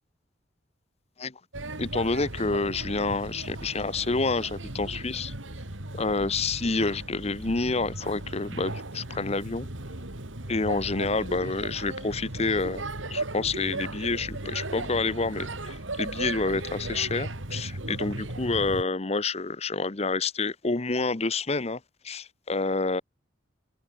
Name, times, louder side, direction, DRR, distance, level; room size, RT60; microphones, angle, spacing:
Male speech man speaking / Child speech kid speaking / Chatter, 1.5-18.8, right 2 dB, 85° right, 3.4 m, -36 dB
voice 1, 1.8-5.3 5.9-9.7 10.5-12.8 13.1-23.0, left 3 dB, 35° left, 1.0 m, -28 dB
head